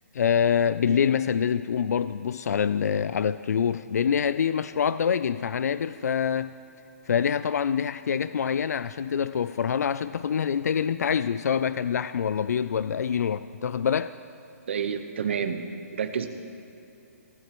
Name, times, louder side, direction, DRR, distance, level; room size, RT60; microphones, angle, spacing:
voice 1, 0.1-6.5 7.1-14.1, left 7 dB, 85° left, 0.3 m, -25 dB
voice 2, 14.7-16.3, right 7 dB, 50° right, 0.9 m, -29 dB
22.5 x 12.5 x 3.0 m
hypercardioid pair, 175°, 8 cm